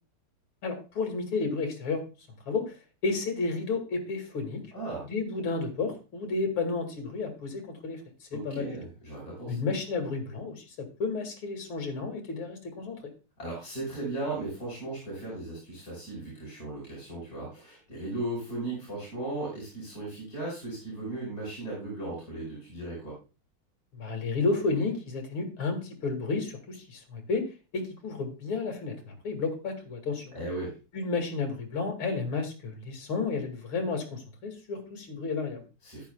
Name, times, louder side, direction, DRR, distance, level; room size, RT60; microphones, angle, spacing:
voice 1, 0.6-2.0 2.5-2.7 3.0-4.6 5.0-8.0 8.3-8.8 9.5-13.0 23.9-27.5 27.7-30.4 30.9-35.6, left 4 dB, 70° left, 4 dB, 3.0 m, -32 dB
voice 2, 4.7-5.0 8.3-9.6 13.4-23.2 30.3-30.7 35.8-36.0, right 2 dB, 40° left, -7 dB, 5.3 m, -36 dB
13.5 x 10.5 x 2.3 m, 0.31 s
omnidirectional pair, 2.4 m